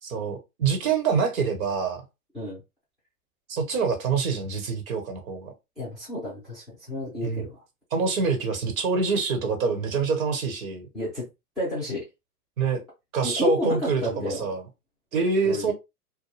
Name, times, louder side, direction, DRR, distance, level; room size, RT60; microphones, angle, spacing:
voice 1, 0.0-2.0 3.5-5.5 7.2-7.5 7.9-10.9 12.6-12.8 13.1-14.6 15.1-15.7, right 5 dB, 60° right, 1.1 m, -26 dB
voice 2, 5.8-7.6 10.9-11.3 11.6-12.0 13.2-14.5 15.4-15.7, left 1 dB, ahead, 0.4 m, -31 dB
2.2 x 2.2 x 3.1 m
hypercardioid pair, 130°, 46 cm